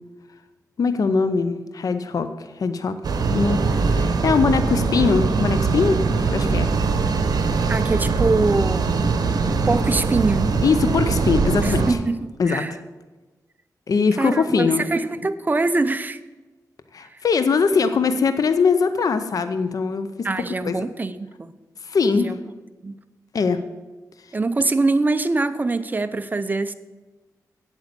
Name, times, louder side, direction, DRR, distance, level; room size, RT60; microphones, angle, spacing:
voice 1, 0.8-3.0 3.3-6.0 6.3-6.8 10.6-12.0 12.4-12.6 13.9-14.8 16.9-20.3 20.6-20.8 21.8-22.4 23.3-23.6, left 5 dB, 60° left, 10 dB, 0.6 m, -21 dB
sound 1, 3.0-11.9, right 4 dB, 75° right, 1.0 m, -21 dB
voice 2, 7.7-9.0 9.7-10.5 11.6-12.7 14.2-16.2 20.2-21.5 22.2-22.4 22.8-23.0 24.3-26.7, right 3 dB, 25° right, 11 dB, 0.6 m, -23 dB
8.2 x 8.1 x 6.7 m, 1.2 s
wide cardioid pair, 85°, 7 cm